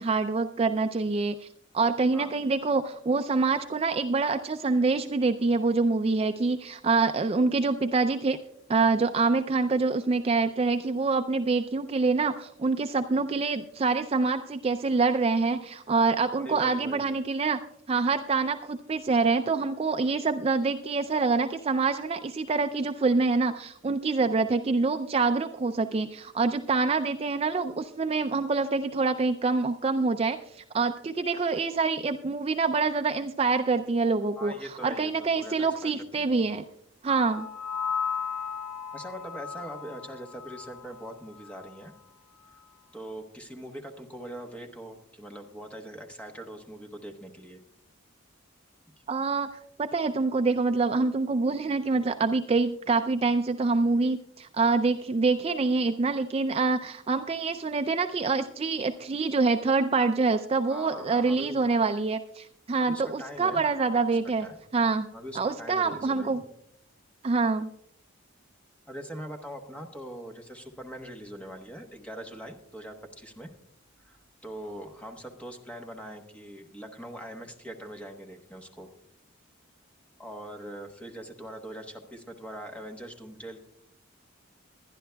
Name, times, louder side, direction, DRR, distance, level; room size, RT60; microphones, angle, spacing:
voice 1, 0.0-1.5 1.7-8.4 8.7-17.6 17.9-36.6 37.0-37.5 49.1-64.5 64.7-65.1 65.3-66.4 67.2-67.7, right 4 dB, 30° right, 8 dB, 0.3 m, -26 dB
voice 2, 16.4-17.1 34.4-36.3 38.9-41.9 42.9-47.6 60.7-61.6 62.9-63.6 63.9-64.0 64.4-64.6 65.1-66.4 68.9-73.5 74.0-78.9 80.2-83.6, equal, 5° left, 3 dB, 1.1 m, -42 dB
sound 1, 37.1-41.1 41.4-41.7, left 6 dB, 90° left, 1.2 m, -35 dB
22.0 x 11.0 x 2.3 m, 0.77 s
head